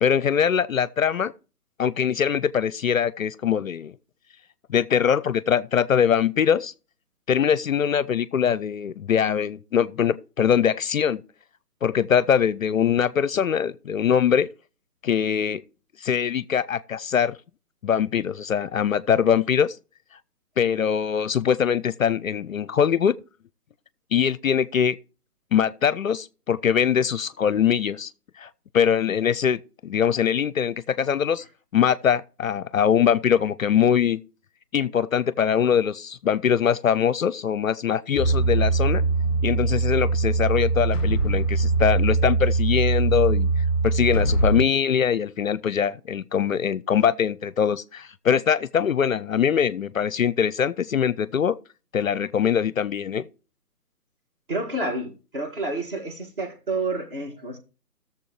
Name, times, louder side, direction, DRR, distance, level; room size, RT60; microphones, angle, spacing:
voice 1, 0.0-1.3 1.8-3.9 4.7-6.7 7.3-11.2 11.8-14.5 15.0-15.6 16.0-17.4 17.8-19.8 20.6-23.1 24.1-25.0 25.5-28.1 28.4-31.4 31.7-34.2 34.7-39.0 39.4-43.5 43.8-51.6 51.9-53.2, left 8 dB, 60° left, 0.5 m, -22 dB
sound 1, 38.2-44.6, right 3 dB, 10° left, 1.3 m, -22 dB
voice 2, 54.5-57.6, right 2 dB, 35° right, 1.7 m, -29 dB
17.0 x 7.0 x 3.0 m
hypercardioid pair, 155°, 47 cm